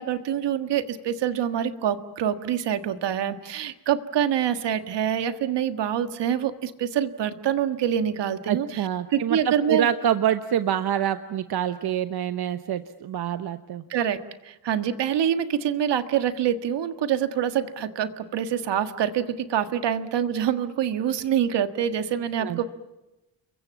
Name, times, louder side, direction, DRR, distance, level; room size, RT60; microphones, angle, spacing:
voice 1, 0.0-9.9 13.9-14.2 14.4-22.7, right 9 dB, 80° right, 10 dB, 1.7 m, -26 dB
voice 2, 8.5-13.9 22.4-22.6, right 10 dB, 65° right, 10 dB, 1.0 m, -26 dB
29.5 x 22.5 x 7.2 m, 1.0 s
cardioid pair, 130°, 42 cm